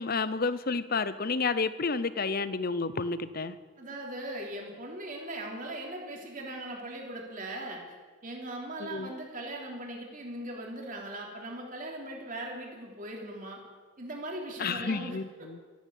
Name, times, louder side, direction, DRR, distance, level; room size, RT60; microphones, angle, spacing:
voice 1, 0.0-3.5 8.8-9.1 14.6-15.6, left 4 dB, 40° left, 14 dB, 0.7 m, -30 dB
voice 2, 3.8-7.8 8.2-13.6 14.0-15.5, right 1 dB, 35° right, 0 dB, 3.2 m, -39 dB
14.0 x 11.5 x 8.5 m, 1.5 s
head